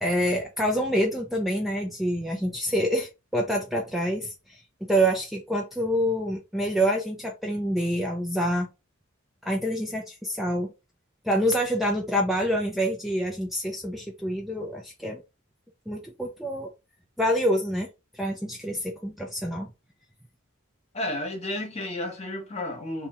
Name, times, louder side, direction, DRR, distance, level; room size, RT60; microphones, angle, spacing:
voice 1, 0.0-4.6 4.9-8.7 9.4-10.7 11.2-15.2 15.9-16.7 17.2-17.9 18.1-19.7, equal, ahead, 0.5 m, -26 dB
voice 2, 20.9-23.1, left 1 dB, 30° left, 1.2 m, -32 dB
3.6 x 2.8 x 4.2 m
head